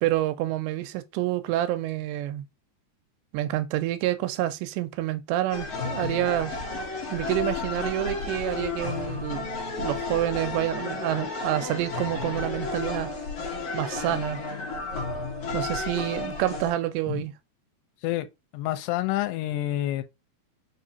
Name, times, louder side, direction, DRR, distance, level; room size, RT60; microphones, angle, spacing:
voice 1, 0.0-2.5 3.3-6.5 7.1-9.5 9.8-13.1 13.7-14.4 15.5-17.3, right 14 dB, 85° right, 2.7 m, -28 dB
sound 1, 5.5-16.7, left 3 dB, 60° left, 1.7 m, -32 dB
voice 2, 18.5-20.0, left 14 dB, 85° left, 2.7 m, -28 dB
5.9 x 2.9 x 2.7 m
omnidirectional pair, 4.8 m